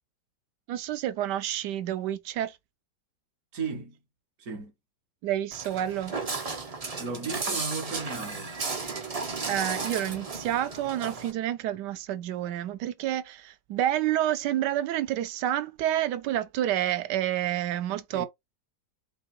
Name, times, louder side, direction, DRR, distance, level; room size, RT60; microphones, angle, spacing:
voice 1, 0.7-2.6 5.2-6.1 9.5-18.3, right 12 dB, 80° right, 1.2 m, -29 dB
voice 2, 3.5-4.0 4.4-4.7 7.0-8.5 18.1-18.3, right 4 dB, 60° right, 1.5 m, -35 dB
Walk footsteps, 5.5-11.3, right 4 dB, 40° right, 0.5 m, -34 dB
5.6 x 2.9 x 3.1 m
omnidirectional pair, 1.8 m